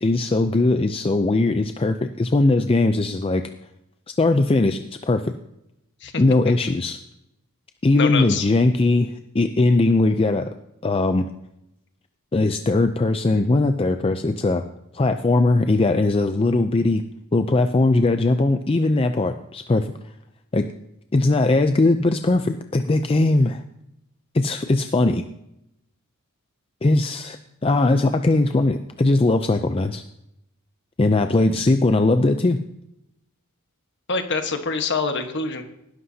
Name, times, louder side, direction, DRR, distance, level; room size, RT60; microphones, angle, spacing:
voice 1, 0.0-3.4 4.2-5.3 6.2-7.0 7.8-10.5 10.8-11.3 12.3-14.6 14.9-17.0 17.3-19.9 20.5-20.6 21.1-23.6 24.3-25.2 26.8-30.0 31.0-32.6, left 2 dB, 25° left, 8 dB, 0.4 m, -20 dB
voice 2, 7.9-8.5 34.1-35.6, left 4 dB, 55° left, 6 dB, 1.3 m, -25 dB
19.0 x 11.5 x 2.8 m, 0.82 s
head